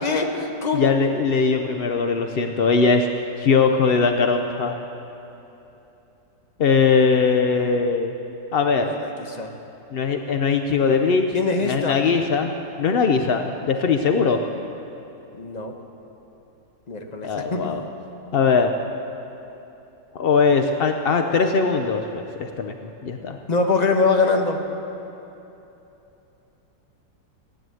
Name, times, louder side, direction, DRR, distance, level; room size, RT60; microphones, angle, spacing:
voice 1, 0.0-0.9 8.8-9.5 11.3-12.0 15.4-15.7 16.9-17.9 23.5-24.6, left 3 dB, 30° left, 4 dB, 0.9 m, -23 dB
voice 2, 0.7-3.1 3.4-4.8 6.6-8.1 8.5-8.9 9.9-11.3 11.6-12.5 12.8-14.4 17.2-17.8 18.3-18.7 20.1-22.7 23.0-23.4, left 5 dB, 70° left, 5 dB, 0.5 m, -20 dB
15.5 x 10.0 x 7.7 m, 3.0 s
omnidirectional pair, 1.9 m